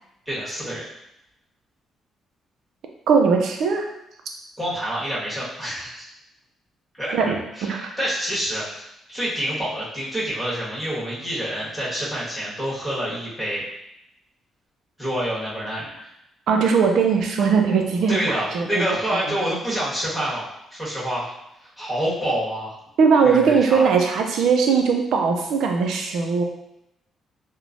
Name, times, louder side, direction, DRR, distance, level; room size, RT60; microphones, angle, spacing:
voice 1, 0.3-0.8 4.6-6.1 7.0-7.2 7.5-13.6 15.0-16.1 18.1-21.3 21.6-22.7 23.2-23.9, equal, 5° left, -8 dB, 1.2 m, -27 dB
voice 2, 3.1-3.9 7.1-7.4 7.6-7.9 16.5-18.8 19.3-19.4 23.0-26.4, right 5 dB, 75° right, 3 dB, 0.4 m, -19 dB
2.9 x 2.0 x 2.5 m, 0.81 s
cardioid pair, 90°, 0 cm